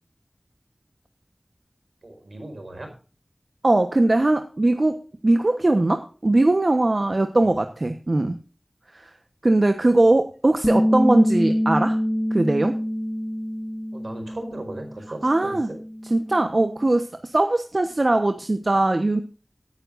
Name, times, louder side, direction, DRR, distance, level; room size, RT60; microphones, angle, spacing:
voice 1, 2.0-2.9 7.4-7.5 9.8-10.0 13.9-15.8, right 2 dB, 80° right, 4 dB, 4.7 m, -37 dB
voice 2, 3.6-8.4 8.9-9.1 9.4-12.0 12.3-12.8 15.2-15.7 16.1-19.2, right 2 dB, 55° right, 7 dB, 1.1 m, -20 dB
Bass guitar, 10.6-15.0 15.3-16.9, equal, 10° left, 0.6 m, -25 dB
18.5 x 9.7 x 2.6 m, 0.37 s
wide cardioid pair, 40°, 0 cm